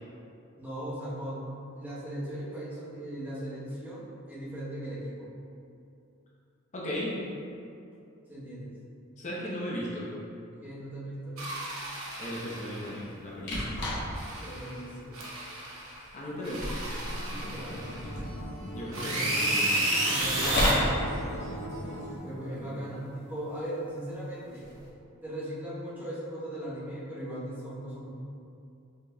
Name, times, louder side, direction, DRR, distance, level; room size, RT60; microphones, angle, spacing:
voice 1, 0.6-5.3 8.3-8.7 10.6-11.4 14.4-15.2 17.3-18.0 18.9-19.4 20.1-21.2 22.2-24.7 25.2-28.1, right 1 dB, 10° right, -9 dB, 0.9 m, -38 dB
voice 2, 6.7-7.2 9.2-10.1 12.2-13.8 16.1-16.6 18.7-19.6 22.5-22.8, equal, 35° left, -6 dB, 0.7 m, -36 dB
sound 1, 11.4-13.0 14.1-14.8 15.1-16.0 16.4-18.2 18.9-20.7, right 1 dB, 80° right, 0.8 m, -32 dB
sound 2, 13.4-14.3 14.8-14.9 15.8-16.1 16.4-18.7 20.2-20.9 24.5-24.9, left 1 dB, 55° left, 1.1 m, -31 dB
Acoustic guitar, 17.1-22.2, equal, 70° left, 0.9 m, -40 dB
5.2 x 4.0 x 2.2 m, 2.6 s
head